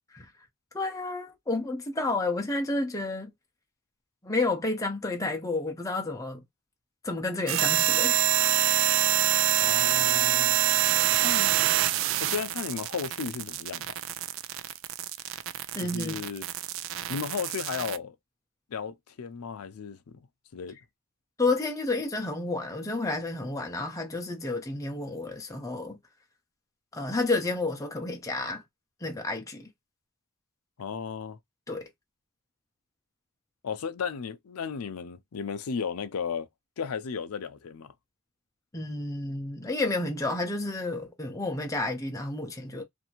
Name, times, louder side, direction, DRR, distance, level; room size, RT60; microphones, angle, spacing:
voice 1, 0.7-3.3 4.2-6.4 7.0-8.3 15.7-16.2 21.4-26.0 26.9-28.6 29.0-29.7 31.7-31.9 38.7-42.8, left 2 dB, 15° left, 0.5 m, -30 dB
sound 1, 7.5-18.0, right 13 dB, 60° right, 0.3 m, -26 dB
voice 2, 9.6-10.6 11.2-11.5 12.2-14.0 15.8-16.5 17.1-18.2 18.7-20.0 20.5-20.8 30.8-31.4 33.6-36.5 36.8-37.9, left 6 dB, 80° left, 0.5 m, -34 dB
2.6 x 2.6 x 2.9 m
head